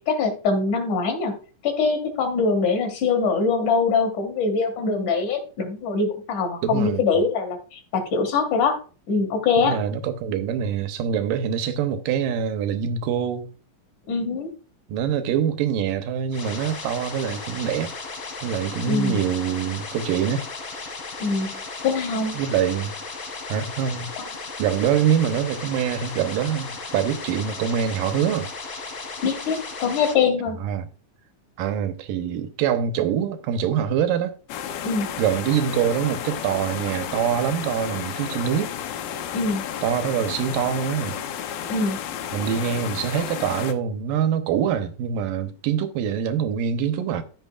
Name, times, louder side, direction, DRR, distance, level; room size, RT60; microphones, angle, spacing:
voice 1, 0.1-1.3 1.6-8.8 9.1-9.8 14.1-14.5 18.9-19.2 21.2-21.5 21.8-22.4 29.2-30.6 34.8-35.1 39.3-39.6 41.7-42.0, left 4 dB, 65° left, 3.4 m, -23 dB
voice 2, 6.6-7.2 9.6-13.5 14.9-17.9 18.4-20.5 22.3-22.9 23.5-24.1 24.6-28.5 30.6-30.9 31.6-34.4 35.2-38.7 39.8-41.2 42.3-47.2, right 8 dB, 85° right, 2.6 m, -24 dB
sound 1, 16.3-30.1, left 4 dB, 45° left, 2.6 m, -35 dB
sound 2, 34.5-43.7, left 9 dB, 90° left, 2.6 m, -32 dB
14.5 x 6.3 x 2.4 m
omnidirectional pair, 3.8 m